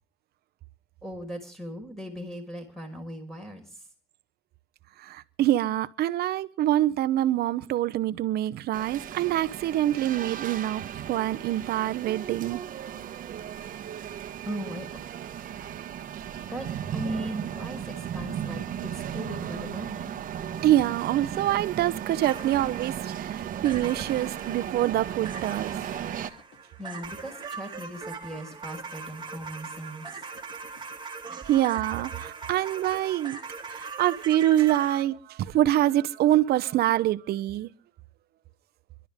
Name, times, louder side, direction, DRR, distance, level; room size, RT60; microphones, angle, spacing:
voice 1, 1.0-3.8 14.4-15.0 16.5-16.7 16.9-20.2 26.8-30.1, equal, ahead, 5.2 m, -38 dB
voice 2, 5.0-12.6 20.6-25.7 31.4-33.4 33.7-37.7, right 13 dB, 70° right, 0.8 m, -25 dB
sound 1, 8.7-26.3, right 9 dB, 55° right, 1.2 m, -36 dB
sound 2, 22.2-35.0, right 5 dB, 25° right, 2.3 m, -41 dB
sound 3, 24.7-30.9, left 7 dB, 80° left, 3.2 m, -56 dB
26.0 x 12.5 x 3.6 m
cardioid pair, 110°, 17 cm